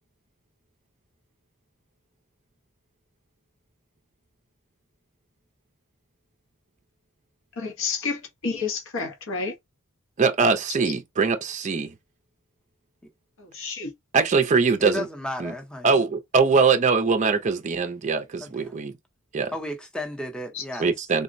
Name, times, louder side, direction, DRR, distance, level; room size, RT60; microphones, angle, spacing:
voice 1, 7.6-9.5 13.4-13.9 20.5-20.6, left 4 dB, 65° left, 0.8 m, -30 dB
voice 2, 10.2-11.9 14.1-15.1 15.4-15.5 15.8-18.9 19.3-19.5 20.8-21.2, right 4 dB, 35° right, 0.4 m, -22 dB
voice 3, 14.8-15.9 18.4-18.7 19.5-20.9, left 1 dB, 5° left, 0.7 m, -33 dB
3.7 x 2.1 x 2.5 m
head